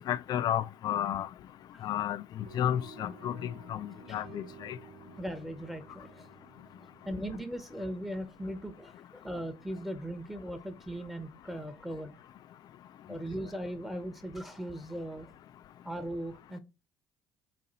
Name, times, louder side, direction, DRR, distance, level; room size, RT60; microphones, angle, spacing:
voice 1, 0.1-1.3 1.8-4.8, left 11 dB, 55° left, 0.4 m, -32 dB
sound 1, 2.4-8.6, right 5 dB, 60° right, 0.8 m, -53 dB
voice 2, 5.2-6.3 7.0-12.2 13.1-15.3 15.8-16.6, equal, 5° right, 0.8 m, -39 dB
4.2 x 2.7 x 3.9 m
hypercardioid pair, 65°, 8 cm